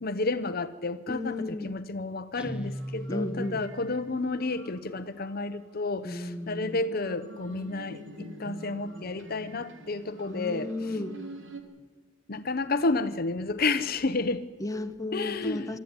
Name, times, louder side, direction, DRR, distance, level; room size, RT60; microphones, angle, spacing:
voice 1, 0.0-10.7 12.3-14.4 15.1-15.7, left 3 dB, 55° left, 12 dB, 0.9 m, -31 dB
voice 2, 1.1-1.8 3.1-3.6 6.0-6.8 10.3-11.2 14.6-15.8, left 2 dB, 20° left, 7 dB, 1.1 m, -34 dB
Guitar, 2.4-4.1, equal, 5° right, 1.0 m, -38 dB
sound 1, 2.6-4.1 4.3-5.4 6.2-11.6, right 1 dB, 90° right, 3.0 m, -46 dB
23.0 x 13.5 x 9.8 m, 1.4 s
head